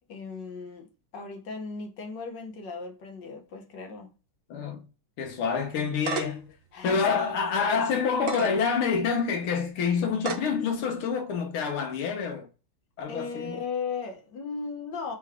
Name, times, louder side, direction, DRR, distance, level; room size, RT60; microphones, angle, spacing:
voice 1, 0.1-4.1 6.7-7.2 7.5-7.7 13.1-15.1, left 5 dB, 60° left, 1.5 m, -36 dB
voice 2, 4.5-4.9 5.2-6.5 6.8-12.5 13.0-13.5, left 6 dB, 85° left, 1.9 m, -27 dB
sound 1, 5.7-6.5 7.0-7.1 8.1-8.5 9.2-9.3 10.2-10.5, right 6 dB, 75° right, 0.7 m, -32 dB
4.5 x 3.1 x 3.5 m
omnidirectional pair, 2.3 m